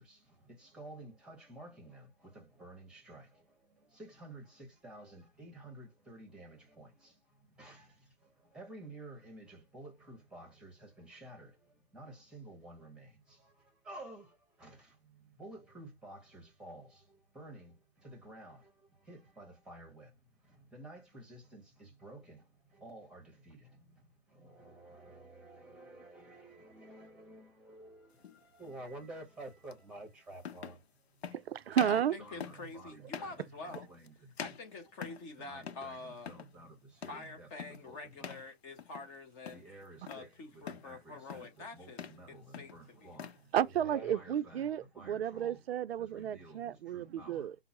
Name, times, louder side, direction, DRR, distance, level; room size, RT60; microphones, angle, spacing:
voice 1, 0.8-2.0 2.3-3.2 4.0-4.4 4.8-6.9 7.6-7.8 8.5-10.7 11.0-11.5 11.9-13.0 13.9-14.2 14.6-14.8 15.4-16.8 17.4-17.7 18.0-18.6 19.1-20.0 20.7-21.6 22.0-22.4 22.8-23.6 24.8-28.0 28.6-30.7 31.9-33.3 33.6-34.1 34.4-34.5 35.4-36.7 37.0-37.5 38.2-38.3 39.5-40.3 40.8-41.5 41.7-42.4 42.7-43.3 43.6-44.7 44.9-45.6 46.1-46.6 46.9-47.5, right 2 dB, 5° right, 0.9 m, -50 dB
sound 1, 28.2-28.4 29.7-29.8 30.4-30.8 31.2-31.4 31.7-32.1 32.4-32.7 33.1-33.4 33.7-34.1 34.4-35.3 35.6-35.9 36.2-36.5 37.0-37.3 37.6-37.9 38.2-38.5 38.8-39.2 39.4-40.3 40.7-40.9 41.3-41.6 41.9-42.2 42.5-43.4, left 7 dB, 75° left, 0.7 m, -45 dB
voice 2, 31.3-32.2 43.5-47.6, right 9 dB, 70° right, 0.5 m, -32 dB
voice 3, 31.8-33.9 34.4-36.3 37.1-39.8 40.1-42.0 42.3-43.2, left 3 dB, 20° left, 0.6 m, -47 dB
5.4 x 2.0 x 2.9 m
hypercardioid pair, 140°, 32 cm